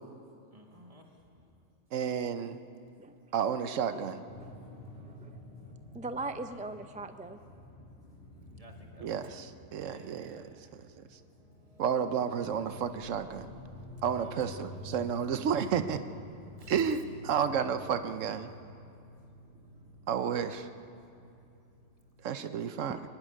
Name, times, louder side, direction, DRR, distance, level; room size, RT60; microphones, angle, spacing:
voice 1, 0.5-1.1 6.9-7.0 8.6-9.4 9.8-10.5 14.1-14.6 16.6-16.9 17.4-18.1, equal, 30° right, 2 dB, 1.9 m, -56 dB
voice 2, 1.9-2.6 3.3-4.2 9.0-10.4 11.8-13.5 14.0-16.0 16.7-18.5 20.1-20.7 22.2-23.0, right 7 dB, 90° right, 10 dB, 1.2 m, -31 dB
sound 1, 4.3-22.3, left 1 dB, 30° left, 3.3 m, -50 dB
voice 3, 5.1-5.4 5.9-7.4 22.9-23.0, right 2 dB, 10° right, 9 dB, 0.4 m, -40 dB
23.5 x 11.0 x 9.9 m, 2.5 s
omnidirectional pair, 1.3 m